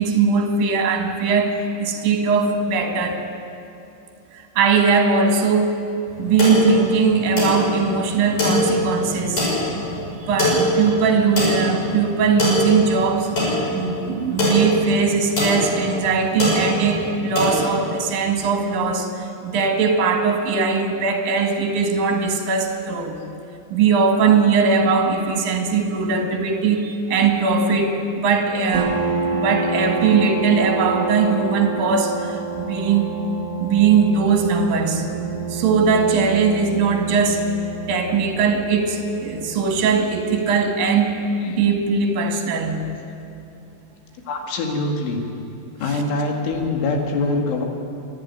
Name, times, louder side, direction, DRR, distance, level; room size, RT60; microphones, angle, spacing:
voice 1, 0.0-3.2 4.3-5.8 6.2-9.5 10.2-13.4 13.7-23.2 23.7-29.0 29.3-33.1 33.6-35.1 35.5-37.5 37.9-41.2 41.5-42.8, right 5 dB, 55° right, 4 dB, 3.3 m, -20 dB
sound 1, 6.1-17.6, left 1 dB, 40° left, 7.1 m, -23 dB
sound 2, 28.7-42.0, right 4 dB, 80° right, 0.9 m, -29 dB
voice 2, 44.3-45.2 45.8-47.7, left 2 dB, 80° left, 2 dB, 4.6 m, -24 dB
25.5 x 11.5 x 9.7 m, 2.7 s
omnidirectional pair, 5.6 m